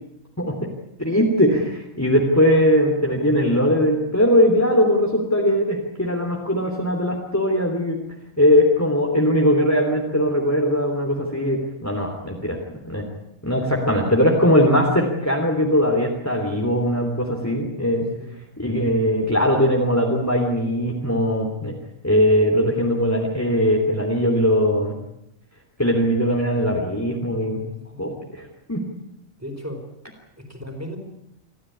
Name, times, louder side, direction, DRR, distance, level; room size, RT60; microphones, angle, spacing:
voice 1, 0.4-0.7 1.0-8.0 8.4-12.6 12.8-13.1 13.4-18.1 18.6-21.8 22.0-24.9 25.8-27.6 28.0-28.9, equal, 10° left, 0 dB, 3.2 m, -20 dB
voice 2, 29.4-29.8 30.4-31.0, equal, 10° right, 3 dB, 5.1 m, -35 dB
26.5 x 15.0 x 9.9 m, 0.83 s
omnidirectional pair, 1.4 m